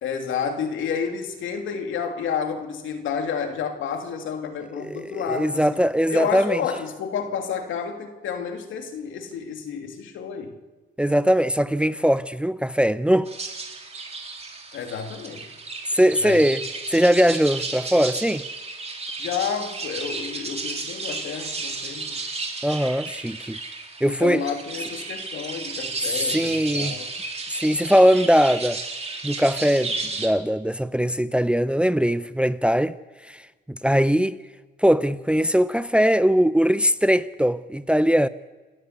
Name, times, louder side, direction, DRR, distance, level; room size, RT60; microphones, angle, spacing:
voice 1, 0.0-5.8 6.1-10.6 14.7-15.5 16.2-16.4 19.2-22.2 24.0-27.1, left 6 dB, 80° left, 2.9 m, -30 dB
voice 2, 4.8-6.6 11.0-13.3 15.9-16.6 16.9-18.4 22.6-23.6 24.0-24.4 26.3-26.9 27.5-28.8 29.2-29.9 30.2-32.9 33.7-34.4 34.8-38.3, equal, 5° right, 0.6 m, -20 dB
sound 1, 13.3-30.3, right 3 dB, 30° right, 3.3 m, -33 dB
28.0 x 12.5 x 8.3 m
cardioid pair, 90°, 20 cm